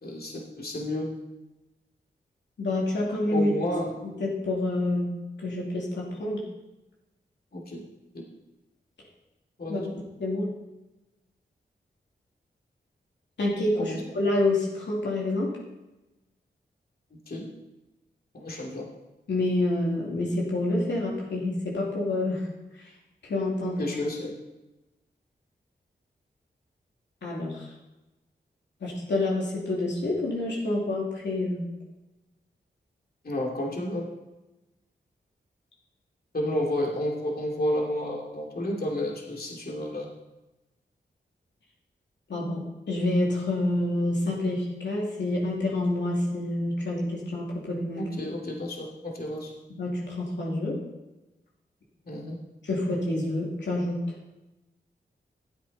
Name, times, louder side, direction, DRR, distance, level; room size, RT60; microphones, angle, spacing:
voice 1, 0.0-1.1 3.3-4.0 7.5-7.8 8.1-8.2 9.6-9.9 13.8-14.0 17.1-17.5 18.3-18.9 23.6-24.4 33.2-34.1 36.3-40.1 48.0-49.5 52.1-52.4, left 1 dB, 55° left, -1 dB, 2.8 m, -31 dB
voice 2, 2.6-3.5 4.2-5.1 5.4-6.4 9.7-9.8 10.2-10.5 13.4-15.5 19.3-22.4 23.2-23.8 27.2-27.6 28.8-31.7 42.3-48.1 49.7-50.8 52.6-54.0, left 2 dB, 85° left, -4 dB, 2.6 m, -27 dB
15.0 x 8.8 x 4.2 m, 1.0 s
cardioid pair, 50°, 18 cm